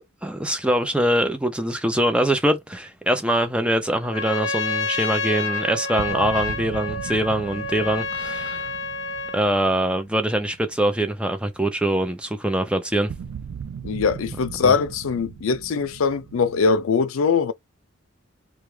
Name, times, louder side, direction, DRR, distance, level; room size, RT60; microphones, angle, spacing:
voice 1, 0.2-8.7 9.3-13.1 14.6-14.7, right 1 dB, 5° right, 0.6 m, -23 dB
Trumpet, 4.0-9.5, left 3 dB, 65° left, 0.9 m, -29 dB
sound 1, 6.0-11.0 11.3-11.6 13.1-16.8, right 7 dB, 80° right, 0.3 m, -38 dB
voice 2, 13.8-17.5, left 5 dB, 85° left, 0.4 m, -22 dB
3.3 x 2.2 x 3.2 m
head